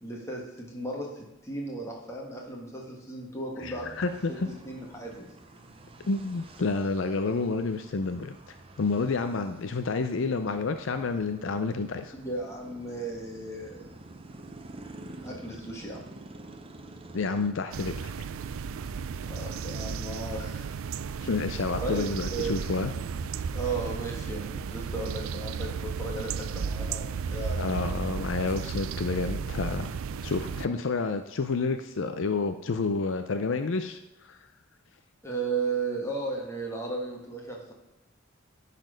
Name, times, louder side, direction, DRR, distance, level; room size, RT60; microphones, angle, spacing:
voice 1, 0.0-3.9 4.3-4.4 4.6-5.3 12.1-13.9 15.2-16.0 19.2-20.7 21.8-22.5 23.5-28.1 35.2-37.7, right 3 dB, 15° left, -1 dB, 1.6 m, -35 dB
voice 2, 3.6-4.5 6.0-12.1 17.1-18.1 21.2-22.9 27.6-29.9 30.2-34.4, left 4 dB, 65° left, 8 dB, 0.5 m, -29 dB
sound 1, 3.6-17.5, right 2 dB, 25° right, 0.6 m, -48 dB
sound 2, 17.7-30.7, right 6 dB, 80° right, 0.4 m, -34 dB
10.5 x 4.2 x 5.1 m, 1.0 s
head